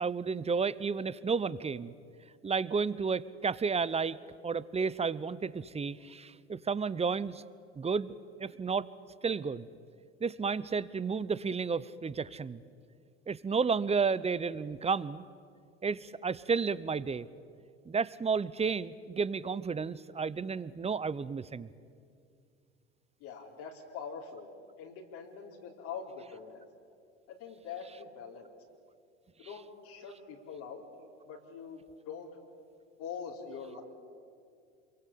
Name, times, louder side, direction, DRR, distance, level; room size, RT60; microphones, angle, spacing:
voice 1, 0.0-1.9 2.4-4.2 4.4-7.4 7.7-8.9 9.2-9.7 10.2-12.6 13.3-15.2 15.8-17.3 17.9-21.7, right 5 dB, 20° right, 18 dB, 0.8 m, -32 dB
voice 2, 23.2-24.5 24.8-26.6 27.3-28.5 29.4-30.8 31.3-32.3 33.0-33.8, left 6 dB, 65° left, -1 dB, 4.1 m, -44 dB
27.5 x 23.0 x 8.6 m, 2.3 s
hypercardioid pair, 75°, 35 cm